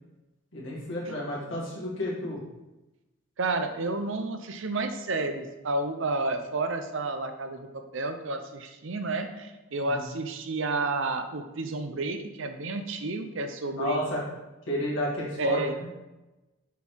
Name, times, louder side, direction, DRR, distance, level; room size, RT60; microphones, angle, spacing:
voice 1, 0.5-2.4 9.8-10.0 13.8-14.2 14.7-15.7, left 1 dB, 65° left, -6 dB, 2.6 m, -31 dB
voice 2, 3.4-14.0 15.4-15.7, right 3 dB, 60° right, 7 dB, 0.7 m, -31 dB
6.9 x 4.6 x 4.6 m, 1.1 s
head